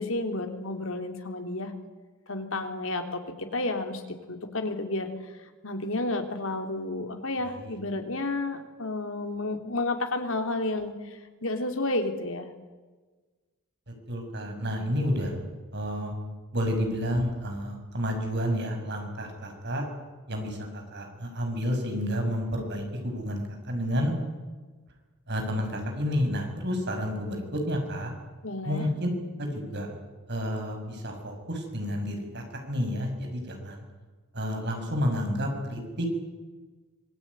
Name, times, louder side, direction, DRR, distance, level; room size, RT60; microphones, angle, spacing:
voice 1, 0.0-1.7 2.3-5.1 5.6-12.5 28.4-28.9, left 2 dB, 65° left, 6 dB, 3.2 m, -31 dB
voice 2, 7.4-7.8 14.1-15.3 15.7-16.1 16.5-19.9 20.3-24.1 25.3-28.1 28.6-29.1 29.4-29.9 30.3-33.8 34.3-36.0, equal, 50° right, 3 dB, 6.5 m, -30 dB
25.5 x 20.5 x 9.7 m, 1.3 s
head